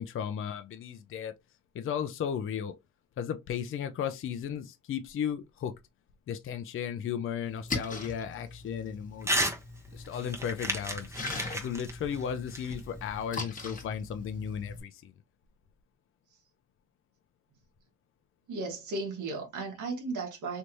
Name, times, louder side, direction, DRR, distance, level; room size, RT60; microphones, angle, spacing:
voice 1, 0.0-1.3 1.7-2.8 3.2-5.8 6.3-9.6 9.9-11.1 11.5-15.1, left 8 dB, 45° left, 0.5 m, -35 dB
Splash splatter, 7.4-14.8, left 3 dB, 25° left, 1.3 m, -41 dB
Crumpling crinkling / Tearing, 9.2-9.6 9.9-13.2, right 1 dB, 10° right, 0.9 m, -33 dB
voice 2, 18.5-20.6, right 3 dB, 80° right, 1.4 m, -35 dB
3.3 x 3.0 x 2.6 m
cardioid pair, 90°, 30 cm